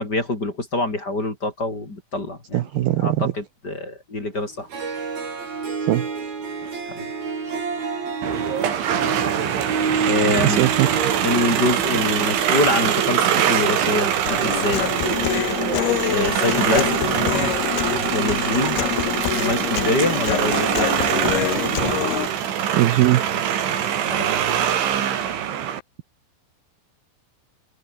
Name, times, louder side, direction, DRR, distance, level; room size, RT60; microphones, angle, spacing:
voice 1, 0.0-4.7 6.9-7.1 7.4-7.5 10.0-10.7 11.2-14.9 16.1-17.0 18.1-18.8 19.3-21.0 24.1-24.3, left 2 dB, 25° left, 4.6 m, -25 dB
voice 2, 2.5-3.3 5.9-6.1 10.4-11.1 22.7-23.2, right 15 dB, 70° right, 2.5 m, -20 dB
Harp, 4.4-4.5 4.7-14.2, right 5 dB, 55° right, 7.7 m, -29 dB
sound 1, 8.2-25.8, right 9 dB, 90° right, 5.4 m, -23 dB
Human voice, 14.3-22.3, left 16 dB, 75° left, 2.6 m, -26 dB
omnidirectional pair, 5.2 m